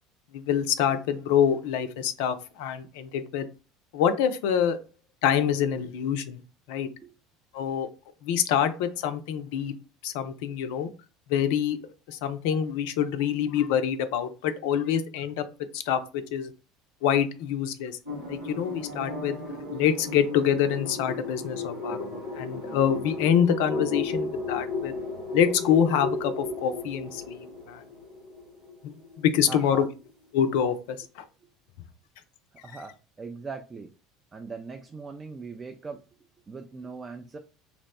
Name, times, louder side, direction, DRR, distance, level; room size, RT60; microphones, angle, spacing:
voice 1, 0.3-3.5 3.9-4.8 5.2-6.4 6.7-6.9 7.5-7.9 8.2-9.7 10.0-10.9 11.3-11.8 12.1-15.4 15.7-16.5 17.0-18.0 18.3-19.4 19.7-24.9 25.3-27.8 28.8-29.9 30.3-31.2, left 8 dB, 60° left, 10 dB, 0.4 m, -26 dB
sound 1, 18.1-30.4, left 3 dB, 90° right, 1.1 m, -35 dB
voice 2, 29.5-29.9 32.6-33.9 34.3-36.0 36.5-37.4, right 4 dB, 25° right, 5 dB, 0.3 m, -40 dB
2.9 x 2.0 x 4.0 m, 0.33 s
figure-of-eight pair, 65°, 0 cm